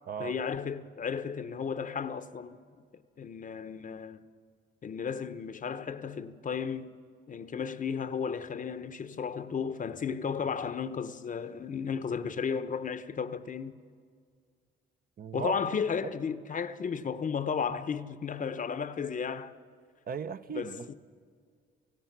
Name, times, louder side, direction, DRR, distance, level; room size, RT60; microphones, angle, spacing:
voice 1, 0.2-2.6 3.2-4.2 4.8-6.9 7.3-13.8 15.3-19.5 20.5-20.9, left 6 dB, 40° left, 0.8 m, -34 dB
voice 2, 15.2-15.6 20.1-20.9, right 7 dB, 50° right, 0.7 m, -37 dB
28.5 x 16.0 x 6.0 m
cardioid pair, 90°, 20 cm